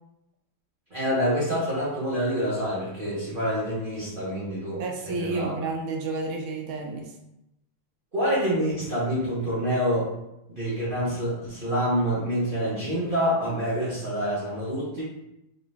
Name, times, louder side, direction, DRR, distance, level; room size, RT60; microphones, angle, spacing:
voice 1, 0.9-5.5 8.1-10.1 10.5-15.0, equal, 35° right, -9 dB, 0.8 m, -27 dB
voice 2, 4.8-7.1, right 3 dB, 75° right, 1 dB, 1.4 m, -31 dB
4.0 x 2.9 x 3.4 m, 0.87 s
omnidirectional pair, 2.4 m